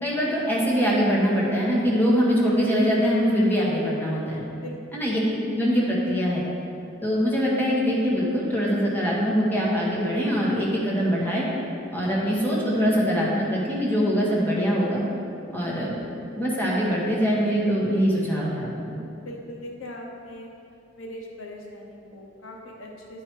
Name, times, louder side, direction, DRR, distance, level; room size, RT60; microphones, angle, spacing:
voice 1, 0.0-4.4 4.9-6.4 7.0-11.4 11.9-15.0 15.5-16.0 16.4-19.0, equal, 10° left, -5 dB, 1.3 m, -23 dB
voice 2, 4.6-5.0 19.2-20.5 21.0-23.2, left 1 dB, 85° left, 0 dB, 1.0 m, -40 dB
9.6 x 4.6 x 4.5 m, 2.6 s
head